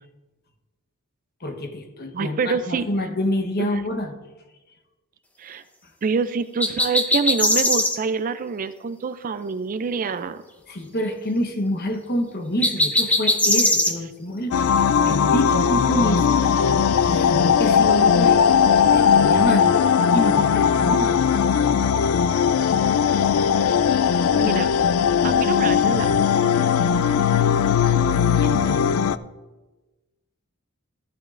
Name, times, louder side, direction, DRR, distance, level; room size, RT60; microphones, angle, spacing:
voice 1, 1.4-4.2 10.7-16.4 17.0-18.5 18.8-19.9 20.1-21.2 28.3-28.9, left 1 dB, 45° left, 5 dB, 1.1 m, -27 dB
voice 2, 2.1-2.9 3.6-3.7 5.4-5.6 6.0-10.4 24.3-24.7 25.2-26.1, right 5 dB, 40° right, 13 dB, 0.4 m, -26 dB
sound 1, 6.6-8.0 12.6-13.9, left 1 dB, 5° left, 0.7 m, -20 dB
sound 2, 14.5-29.2, left 7 dB, 75° left, 0.3 m, -19 dB
13.5 x 11.0 x 2.5 m, 1.2 s
head